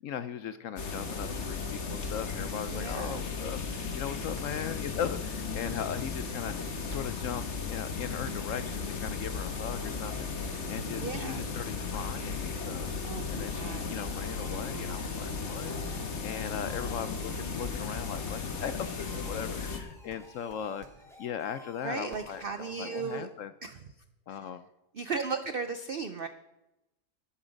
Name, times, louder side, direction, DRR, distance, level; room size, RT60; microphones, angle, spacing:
voice 1, 0.0-6.6 6.9-12.9 13.3-20.9 21.2-23.5 24.3-24.7, left 8 dB, 65° left, 12 dB, 0.8 m, -39 dB
sound 1, 0.8-19.8, left 5 dB, 50° left, 1.4 m, -35 dB
voice 2, 2.7-3.2 11.0-11.4 13.0-13.9 21.8-23.3 23.6-23.8 24.9-26.3, right 5 dB, 70° right, 9 dB, 0.5 m, -36 dB
sound 2, 4.3-4.9 5.6-6.1 6.9-7.5 8.3-8.8 10.2-21.1 22.1-22.5, right 3 dB, 40° right, 0.8 m, -50 dB
sound 3, 13.6-23.2, left 1 dB, ahead, 2.1 m, -55 dB
11.5 x 10.5 x 5.2 m, 0.96 s
omnidirectional pair, 1.7 m